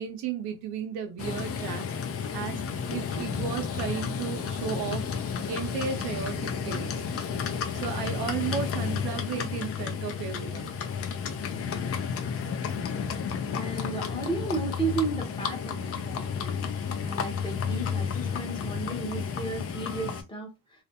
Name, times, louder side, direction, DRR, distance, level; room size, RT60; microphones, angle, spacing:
voice 1, 0.0-1.9 2.3-2.6 2.9-5.0 5.5-7.1 7.7-10.8, right 7 dB, 85° right, 0.7 m, -34 dB
Livestock farm animals working animals, 1.2-20.2, left 6 dB, 40° left, 0.5 m, -32 dB
voice 2, 13.5-16.7 17.0-20.5, right 3 dB, 15° left, 0.8 m, -33 dB
2.4 x 2.1 x 2.8 m
cardioid pair, 125°, 38 cm